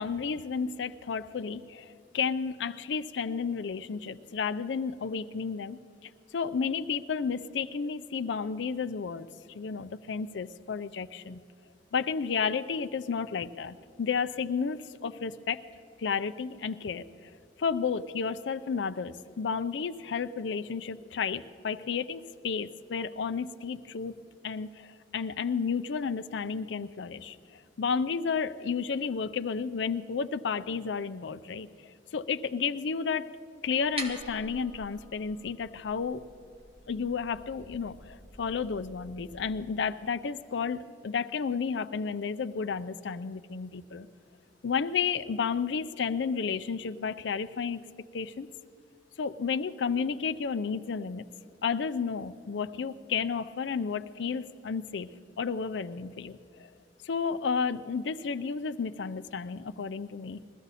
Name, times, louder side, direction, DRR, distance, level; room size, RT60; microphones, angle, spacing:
voice 1, 0.0-5.8 6.0-9.3 9.5-11.4 11.9-15.6 16.0-17.1 17.6-24.2 24.4-31.7 32.1-33.3 33.6-36.2 36.9-44.1 44.6-47.8 48.1-48.5 49.2-51.2 51.6-55.1 55.4-56.7 57.0-60.4, left 5 dB, 70° left, 13 dB, 0.5 m, -32 dB
sound 1, 33.7-39.6, right 1 dB, 35° right, 2.0 m, -46 dB
21.5 x 14.5 x 4.1 m, 2.4 s
head